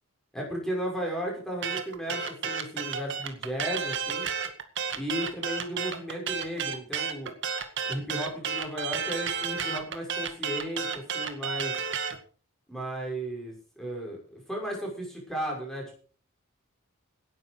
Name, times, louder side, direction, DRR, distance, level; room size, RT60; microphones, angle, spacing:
voice 1, 0.3-4.3 4.9-7.3 7.9-11.8 12.7-16.0, equal, ahead, -1 dB, 6.2 m, -35 dB
sound 1, 1.6-12.2, right 6 dB, 55° right, 2.0 m, -31 dB
18.0 x 10.5 x 4.8 m, 0.41 s
head